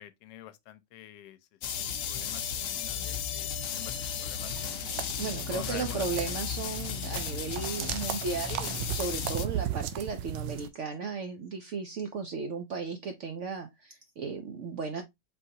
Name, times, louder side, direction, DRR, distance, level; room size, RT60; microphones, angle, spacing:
voice 1, 0.0-1.4 1.8-4.8 5.5-6.0, left 13 dB, 85° left, 1.2 m, -47 dB
sound 1, 1.6-9.5, left 8 dB, 65° left, 0.9 m, -35 dB
sound 2, 4.5-10.7, right 10 dB, 85° right, 1.3 m, -37 dB
voice 2, 5.2-15.0, right 5 dB, 70° right, 0.7 m, -35 dB
4.5 x 3.8 x 2.7 m
omnidirectional pair, 1.9 m